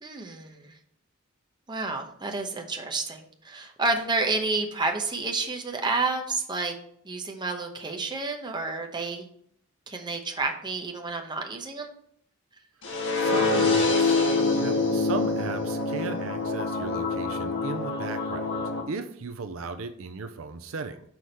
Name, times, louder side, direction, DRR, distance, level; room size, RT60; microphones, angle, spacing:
voice 1, 0.0-0.7 1.7-6.8 7.0-9.3 9.9-11.9, right 3 dB, 20° right, 3 dB, 1.0 m, -30 dB
sound 1, 12.8-18.8, left 3 dB, 60° left, 1.7 m, -25 dB
voice 2, 12.8-14.2 14.5-21.0, right 4 dB, 70° right, 9 dB, 0.6 m, -36 dB
6.1 x 4.8 x 5.4 m, 0.67 s
head